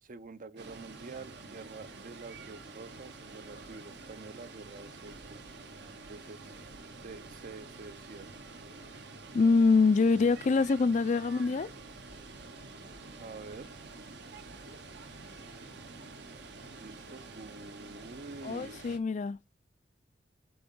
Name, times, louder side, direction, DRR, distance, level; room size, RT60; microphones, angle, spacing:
voice 1, 0.0-5.5 6.1-6.7 7.0-8.3 13.2-13.8 16.7-18.8, right 3 dB, 45° right, 0.6 m, -47 dB
Water, 0.6-19.0, right 3 dB, 65° right, 1.0 m, -48 dB
voice 2, 9.3-11.7 18.4-19.4, left 4 dB, 40° left, 0.4 m, -25 dB
7.8 x 3.6 x 5.5 m
head